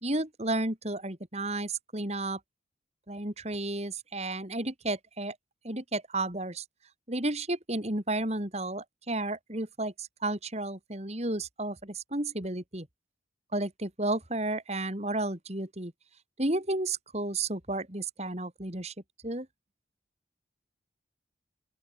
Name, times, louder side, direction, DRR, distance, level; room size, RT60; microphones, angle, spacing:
voice 1, 0.0-2.4 3.1-5.4 5.6-6.6 7.1-12.9 13.5-15.9 16.4-18.9 19.2-19.5, right 2 dB, 35° right, 3.2 m, -32 dB
open air
head